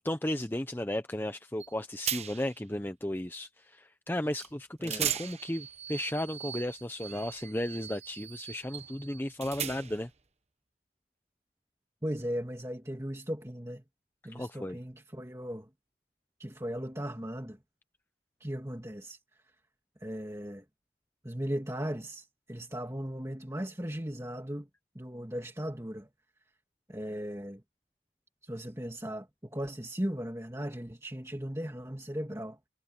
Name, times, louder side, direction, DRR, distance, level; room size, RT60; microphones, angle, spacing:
voice 1, 0.0-10.1 14.3-14.8, left 1 dB, 10° left, 0.7 m, -34 dB
sound 1, 1.6-1.7 2.1-2.6 4.4-4.5 4.8-10.1, right 9 dB, 35° right, 1.1 m, -38 dB
voice 2, 12.0-13.8 14.2-15.7 16.4-17.6 18.4-19.4 20.0-20.6 21.2-24.7 24.9-26.1 26.9-27.6 28.4-32.6, equal, 15° right, 2.5 m, -37 dB
head